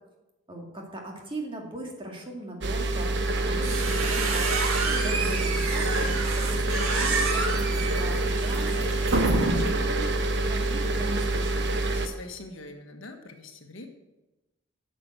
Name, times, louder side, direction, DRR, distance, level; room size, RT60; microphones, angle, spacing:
voice 1, 0.5-4.5 4.8-10.1 10.5-11.7, right 1 dB, 25° right, 0 dB, 2.2 m, -39 dB
sound 1, 2.6-12.1, right 2 dB, 55° right, 1.2 m, -26 dB
sound 2, 3.3-9.9, right 3 dB, 85° right, 2.0 m, -29 dB
voice 2, 11.9-13.9, left 3 dB, 65° left, 4 dB, 1.5 m, -43 dB
11.0 x 6.8 x 7.9 m, 1.0 s
head